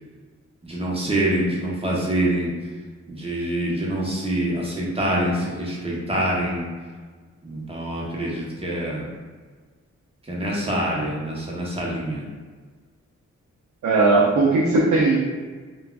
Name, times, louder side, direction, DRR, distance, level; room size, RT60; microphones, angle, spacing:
voice 1, 0.6-2.5 3.1-6.7 7.4-9.1 10.2-12.3, right 1 dB, 20° right, -4 dB, 0.9 m, -25 dB
voice 2, 13.8-15.2, right 3 dB, 75° right, -4 dB, 0.5 m, -18 dB
3.3 x 2.3 x 2.3 m, 1.5 s
cardioid pair, 65°, 29 cm